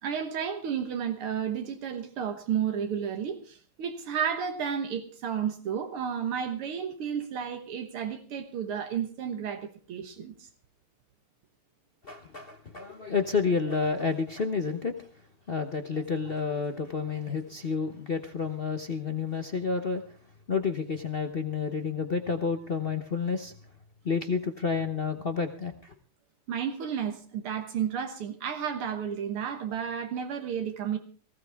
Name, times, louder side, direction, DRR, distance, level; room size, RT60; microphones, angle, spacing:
voice 1, 0.0-10.5 26.5-31.0, right 8 dB, 85° right, 5 dB, 2.2 m, -32 dB
voice 2, 12.0-15.0 15.5-20.0 20.5-23.5 24.0-25.9, left 5 dB, 50° left, 6 dB, 0.7 m, -30 dB
19.0 x 15.5 x 3.5 m, 0.40 s
omnidirectional pair, 2.3 m